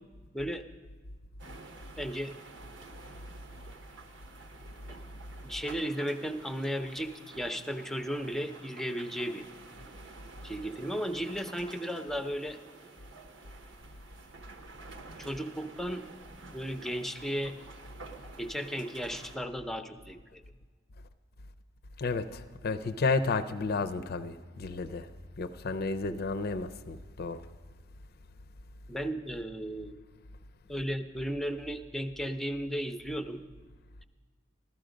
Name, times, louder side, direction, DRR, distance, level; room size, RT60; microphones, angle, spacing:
sound 1, 1.4-19.4, right 3 dB, 90° right, 1.2 m, -50 dB
voice 1, 2.0-2.3 5.4-9.5 10.4-12.6 15.2-16.0 16.5-17.5 18.4-20.4 26.1-26.2 28.9-29.9 30.7-33.4, equal, ahead, 0.6 m, -35 dB
voice 2, 22.0-25.1 25.4-27.4, left 3 dB, 55° left, 0.5 m, -32 dB
15.0 x 12.5 x 5.1 m
head